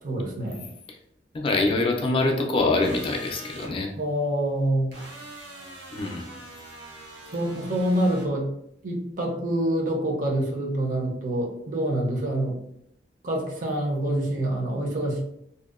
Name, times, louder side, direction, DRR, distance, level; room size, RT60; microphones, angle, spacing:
voice 1, 0.0-0.7 4.0-5.0 7.3-8.5 8.8-12.6 13.2-15.2, right 1 dB, 50° right, 0 dB, 0.5 m, -26 dB
voice 2, 1.3-3.9 5.9-6.2, left 2 dB, 30° left, 1 dB, 0.3 m, -24 dB
sound 1, 2.8-3.7 4.9-8.3, right 1 dB, 80° right, 0.8 m, -43 dB
2.6 x 2.1 x 2.3 m, 0.76 s
head